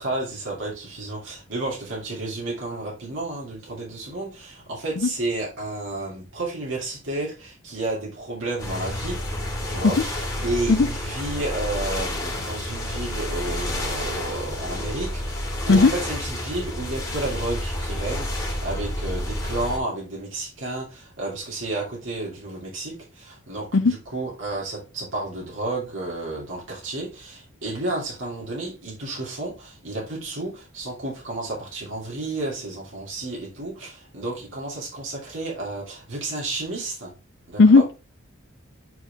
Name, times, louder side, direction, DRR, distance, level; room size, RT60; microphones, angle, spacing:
voice 1, 0.0-9.1 9.7-37.1 37.5-37.8, right 2 dB, 70° right, 2.8 m, -31 dB
sound 1, 8.6-19.8, left 1 dB, 15° left, 2.3 m, -30 dB
voice 2, 37.6-37.9, left 4 dB, 60° left, 0.5 m, -14 dB
9.1 x 4.3 x 3.5 m
head